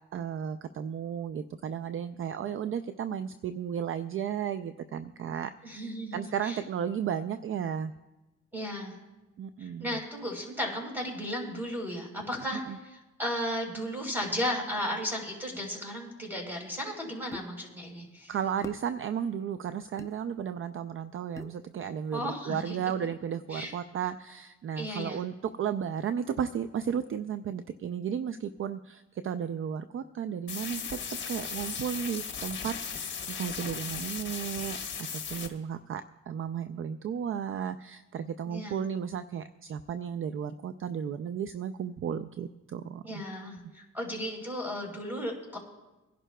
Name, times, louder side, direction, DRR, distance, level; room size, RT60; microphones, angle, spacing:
voice 1, 0.1-7.9 9.4-10.0 12.5-12.8 18.3-31.0 31.3-43.2, right 8 dB, 45° right, 11 dB, 0.4 m, -34 dB
voice 2, 5.6-6.6 8.5-8.9 9.6-18.3 22.1-22.8 23.5-23.7 24.8-25.2 38.5-38.8 43.0-45.6, equal, 5° right, 1 dB, 3.8 m, -35 dB
sound 1, 17.3-17.5 18.6-18.8 20.0-20.1 21.4-21.6, left 3 dB, 10° left, 0.5 m, -42 dB
sound 2, 30.5-35.5, left 6 dB, 40° left, 1.4 m, -37 dB
24.5 x 11.0 x 2.2 m, 1.1 s
cardioid pair, 90°, 30 cm